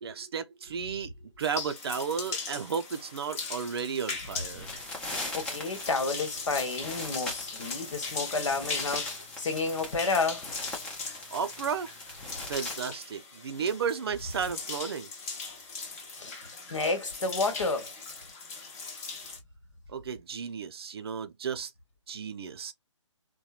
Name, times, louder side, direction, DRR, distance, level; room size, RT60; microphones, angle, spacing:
voice 1, 0.0-4.7 11.3-11.9 12.4-15.1 19.9-21.7 22.1-22.7, right 6 dB, 50° right, 0.4 m, -33 dB
sound 1, 1.4-19.4, left 4 dB, 30° left, 1.0 m, -39 dB
sound 2, 4.5-12.8, left 2 dB, 5° left, 0.5 m, -41 dB
voice 2, 5.3-10.4 16.2-17.9, left 3 dB, 70° left, 1.1 m, -31 dB
2.8 x 2.2 x 2.3 m
hypercardioid pair, 150°, 16 cm